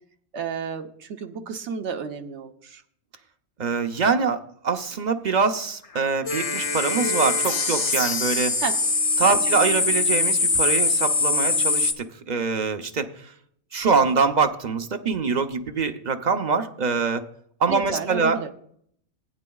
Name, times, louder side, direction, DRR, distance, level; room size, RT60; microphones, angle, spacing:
voice 1, 0.3-2.8 8.6-8.8 9.3-9.4 17.7-18.5, right 6 dB, 65° right, 7 dB, 1.2 m, -32 dB
voice 2, 3.6-8.6 9.2-13.3 13.7-17.2 17.6-18.5, right 5 dB, 40° right, 7 dB, 0.8 m, -24 dB
sound 1, 6.0-6.1 6.3-11.9, left 3 dB, 35° left, 0.7 m, -23 dB
18.5 x 9.6 x 2.3 m, 0.64 s
omnidirectional pair, 1.3 m